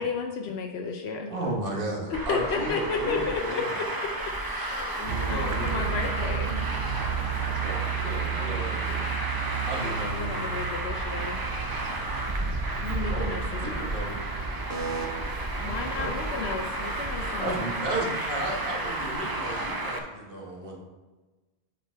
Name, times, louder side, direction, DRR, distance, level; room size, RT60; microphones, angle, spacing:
voice 1, 0.0-1.3 2.1-4.1 4.5-5.0 5.3-6.7 9.6-11.4 12.8-13.9 15.6-17.5, left 5 dB, 80° left, 1 dB, 1.0 m, -33 dB
voice 2, 1.3-3.7 7.6-8.8 9.7-10.5 13.1-14.2 14.7-15.1 15.9-16.1 17.3-20.8, right 2 dB, 60° right, -1 dB, 1.7 m, -34 dB
Traffic noise roadway noise, 2.1-20.0, right 1 dB, 25° right, 0.7 m, -32 dB
voice 3, 5.0-6.0 7.9-9.1 13.0-14.0 15.6-16.9, left 3 dB, 40° left, -4 dB, 1.0 m, -42 dB
sound 1, 5.1-19.7, right 7 dB, 80° right, 0.9 m, -34 dB
8.8 x 5.2 x 4.5 m, 1.2 s
omnidirectional pair, 1.1 m